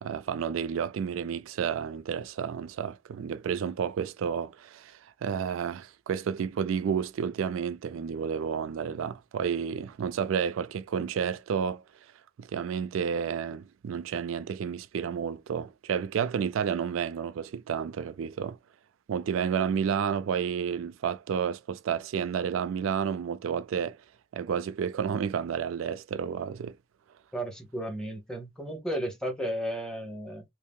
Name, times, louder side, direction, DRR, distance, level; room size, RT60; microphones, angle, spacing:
voice 1, 0.0-11.8 12.4-18.6 19.1-24.0 24.3-26.8, right 7 dB, 75° right, 0.3 m, -31 dB
voice 2, 27.3-30.4, equal, 5° left, 1.0 m, -34 dB
3.0 x 2.8 x 3.6 m
head